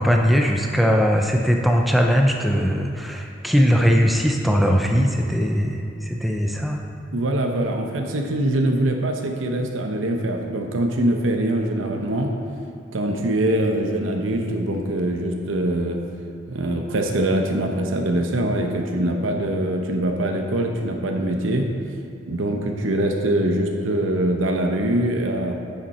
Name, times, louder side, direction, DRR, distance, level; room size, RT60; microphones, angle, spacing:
voice 1, 0.0-6.8, equal, ahead, 1 dB, 0.4 m, -20 dB
voice 2, 7.1-12.3 12.9-16.0 16.5-21.7 22.3-25.5, right 1 dB, 85° right, 3 dB, 0.8 m, -23 dB
10.5 x 5.6 x 4.2 m, 2.7 s
head